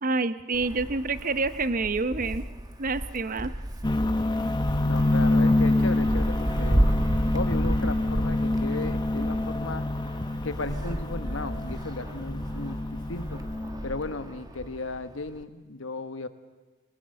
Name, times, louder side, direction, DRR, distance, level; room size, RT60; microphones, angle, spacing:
voice 1, 0.0-2.5 2.8-3.5, right 3 dB, 45° right, 13 dB, 0.8 m, -27 dB
Wind, 0.5-15.4, right 1 dB, 20° right, 1.4 m, -32 dB
sound 1, 3.8-14.1, left 2 dB, 25° left, 1.0 m, -27 dB
voice 2, 4.8-6.9 7.3-9.9 10.4-13.4 13.8-16.3, left 3 dB, 85° left, 10 dB, 1.4 m, -35 dB
25.0 x 19.5 x 8.0 m, 1.3 s
head